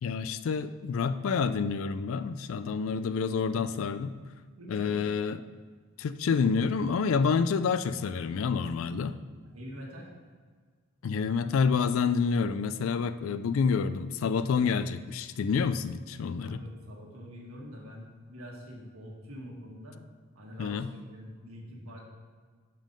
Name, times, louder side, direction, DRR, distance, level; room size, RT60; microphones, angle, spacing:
voice 1, 0.0-4.1 4.7-5.4 6.0-9.2 11.0-16.6 20.6-20.9, left 5 dB, 65° left, 12 dB, 0.3 m, -28 dB
voice 2, 4.6-5.0 9.4-10.1 16.4-20.0 20.3-22.0, equal, 90° right, -1 dB, 1.5 m, -45 dB
5.5 x 5.2 x 5.2 m, 1.5 s
head